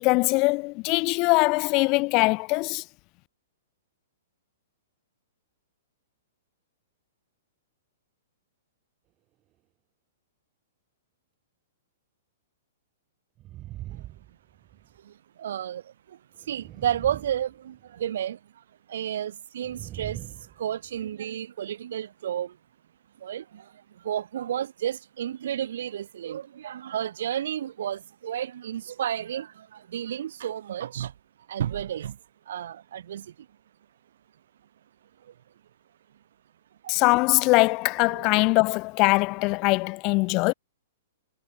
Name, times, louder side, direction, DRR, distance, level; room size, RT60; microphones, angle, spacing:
voice 1, 0.0-2.8 36.9-40.5, left 26 dB, 35° left, 1.3 m, -22 dB
sound 1, 13.4-15.0 16.4-18.1 19.6-21.2, right 15 dB, 30° right, 1.9 m, -42 dB
voice 2, 15.4-15.8 16.5-18.4 18.9-20.2 20.6-22.5 23.2-23.6 24.0-29.5 29.9-31.1 31.5-32.1 32.5-33.3 36.8-36.9 38.1-38.6, right 10 dB, 60° right, 5.5 m, -31 dB
figure-of-eight pair, 110°, 0 cm